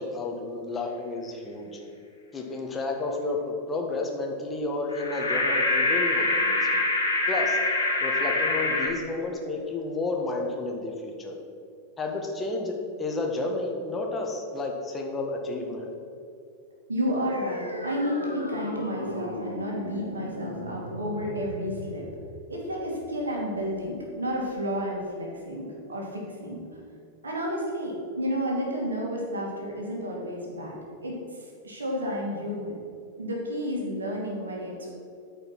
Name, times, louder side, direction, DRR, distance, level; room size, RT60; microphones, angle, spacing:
voice 1, 0.0-1.8 2.3-6.8 7.3-7.6 8.0-11.4 12.0-15.9, left 2 dB, 20° left, 0 dB, 1.6 m, -31 dB
sound 1, 4.9-8.9, left 2 dB, 75° left, 2.2 m, -25 dB
voice 2, 16.9-22.1 22.5-26.6 27.2-32.8 33.2-34.9, equal, 75° right, -1 dB, 2.3 m, -31 dB
sound 2, 17.3-24.3, left 1 dB, 90° right, 1.2 m, -37 dB
13.5 x 5.2 x 5.9 m, 2.4 s
figure-of-eight pair, 90°, 0 cm